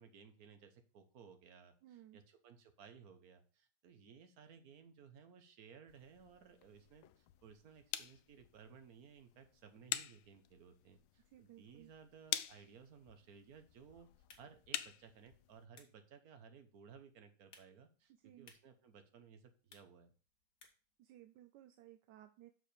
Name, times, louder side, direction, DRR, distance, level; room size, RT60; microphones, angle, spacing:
voice 1, 0.0-14.1 14.4-20.1, right 6 dB, 55° right, 8 dB, 1.3 m, -59 dB
voice 2, 1.8-2.2 11.3-11.9 18.2-18.5 20.6-20.7 21.0-22.5, right 13 dB, 75° right, 8 dB, 1.0 m, -59 dB
sound 1, 5.9-15.6, left 12 dB, 80° left, 1.4 m, -47 dB
sound 2, 14.1-21.0, left 4 dB, 45° left, 1.7 m, -68 dB
6.6 x 4.9 x 6.7 m, 0.37 s
omnidirectional pair, 2.2 m